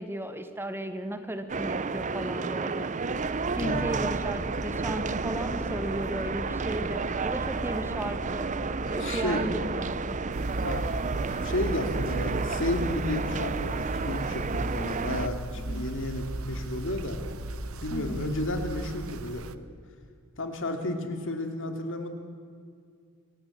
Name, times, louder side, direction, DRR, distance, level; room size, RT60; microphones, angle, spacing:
voice 1, 0.0-2.9 3.6-8.5 8.9-10.2 15.5-15.9 17.9-18.2, right 1 dB, 10° right, 8 dB, 1.2 m, -35 dB
sound 1, 1.5-15.3, right 4 dB, 35° right, 0.7 m, -31 dB
sound 2, 3.1-18.9, equal, 10° left, 2.8 m, -40 dB
voice 2, 8.9-9.4 10.5-10.9 11.3-17.2 17.8-19.5 20.4-22.1, left 1 dB, 60° left, 5 dB, 2.7 m, -32 dB
sound 3, 10.3-19.6, right 2 dB, 70° right, 0.9 m, -37 dB
25.5 x 16.0 x 8.5 m, 2.2 s
head